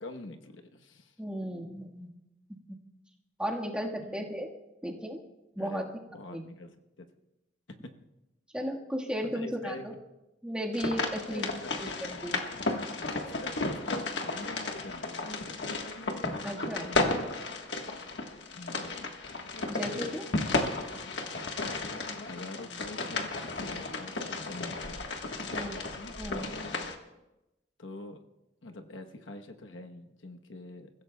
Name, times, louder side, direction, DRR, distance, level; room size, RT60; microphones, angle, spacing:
voice 1, 0.0-1.1 4.0-4.5 5.6-5.8 6.1-7.1 7.7-7.9 9.2-10.0 11.2-11.8 13.0-15.7 18.5-19.0 19.9-20.2 22.2-25.0 25.4-25.6 27.8-28.2 28.6-30.9, left 2 dB, 90° left, 5 dB, 1.0 m, -45 dB
voice 2, 1.2-2.1 3.4-4.5 4.8-5.2 5.5-5.9 6.3-6.4 8.5-9.9 10.4-11.5 11.8-12.4 16.4-17.0 19.7-20.2 25.5-25.8 26.2-26.5, equal, 5° right, -1 dB, 1.5 m, -35 dB
sound 1, 10.7-27.0, left 3 dB, 65° left, 1.4 m, -34 dB
29.0 x 15.5 x 2.3 m, 0.97 s
head